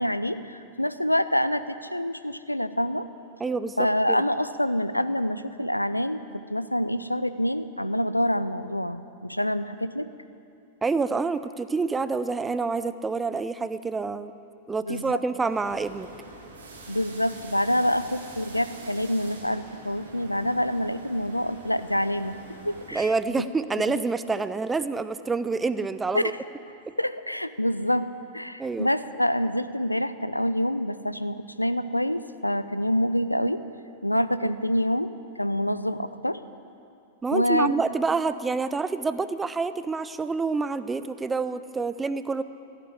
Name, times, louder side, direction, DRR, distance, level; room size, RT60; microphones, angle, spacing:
voice 1, 0.0-3.1 3.8-10.1 14.8-15.2 16.9-23.1 23.9-24.0 26.1-26.2 27.0-33.6 34.0-36.4 37.3-37.7, equal, 90° left, 13 dB, 0.5 m, -26 dB
voice 2, 3.4-3.8 4.1-4.2 10.8-14.3 14.7-16.1 22.9-26.3 26.9-27.0 28.6-28.9 34.4-34.5 37.2-42.4, right 4 dB, 15° right, 13 dB, 0.5 m, -27 dB
sound 1, 15.5-23.1, right 2 dB, 70° right, 2.8 m, -45 dB
14.5 x 8.4 x 9.7 m, 2.6 s
figure-of-eight pair, 95°, 0 cm